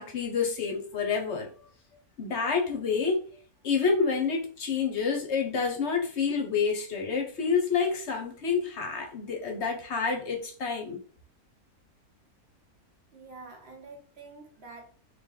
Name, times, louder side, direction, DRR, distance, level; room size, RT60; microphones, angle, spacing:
voice 1, 0.0-1.5 2.2-3.2 3.6-11.0, left 5 dB, 55° left, 0.9 m, -28 dB
voice 2, 13.1-14.8, right 3 dB, 50° right, 0.9 m, -47 dB
3.2 x 2.7 x 3.7 m
omnidirectional pair, 1.6 m